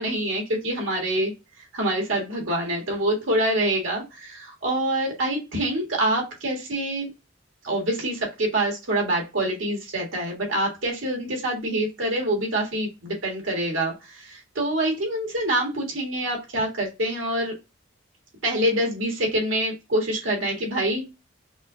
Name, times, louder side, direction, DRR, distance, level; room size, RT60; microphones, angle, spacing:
voice 1, 0.0-1.3 1.7-7.1 7.6-17.6 18.4-21.0, right 1 dB, 70° right, 0 dB, 1.5 m, -26 dB
5.3 x 2.3 x 2.7 m, 0.25 s
head